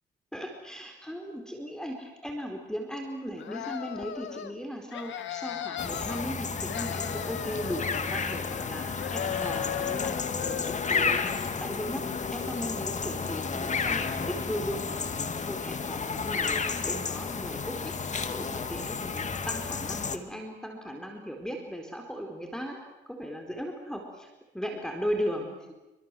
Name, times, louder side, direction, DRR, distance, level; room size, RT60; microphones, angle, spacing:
voice 1, 0.3-22.8 23.1-25.7, equal, 5° left, 3 dB, 4.5 m, -37 dB
sound 1, 3.4-4.5 4.9-6.3 6.5-8.7 9.0-11.0, left 10 dB, 70° left, 1.8 m, -37 dB
sound 2, 5.8-20.2, left 5 dB, 35° left, 2.1 m, -32 dB
sound 3, 15.4-15.5 16.1-16.3 16.9-17.0 17.6-17.8 18.4-18.5 19.1-19.3 19.9-20.0, right 5 dB, 50° right, 7.0 m, -56 dB
27.0 x 24.5 x 7.8 m, 1.0 s
cardioid pair, 90°, 20 cm